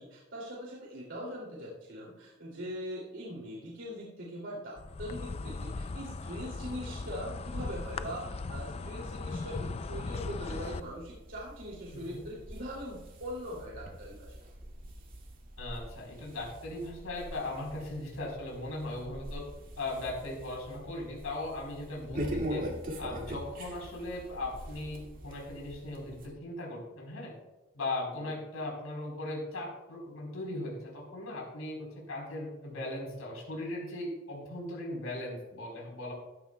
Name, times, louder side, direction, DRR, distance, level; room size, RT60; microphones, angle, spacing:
voice 1, 0.0-14.3 28.2-28.3, equal, 65° right, -5 dB, 2.7 m, -41 dB
Insect, 4.8-10.8, left 3 dB, 30° left, 0.4 m, -38 dB
sound 1, 10.7-26.3, equal, 45° right, 2.1 m, -42 dB
voice 2, 11.9-12.3 15.6-19.4 19.8-22.6 23.0-27.3 27.7-36.1, left 2 dB, 85° left, -2 dB, 4.1 m, -38 dB
14.0 x 12.5 x 2.3 m, 1.1 s
head